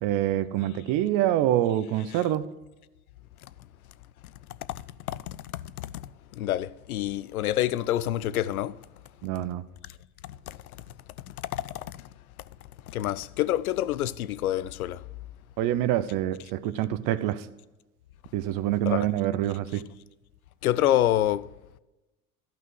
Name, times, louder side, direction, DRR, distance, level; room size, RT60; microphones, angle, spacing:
voice 1, 0.0-2.4 9.2-9.6 15.6-17.5 18.3-19.8, right 13 dB, 50° right, 0.8 m, -26 dB
voice 2, 5.1-5.9 6.3-8.9 10.5-10.6 11.5-12.1 12.9-15.0 18.9-19.1 20.6-21.5, left 13 dB, 85° left, 0.5 m, -27 dB
12.5 x 5.6 x 6.0 m
hypercardioid pair, 80°, 42 cm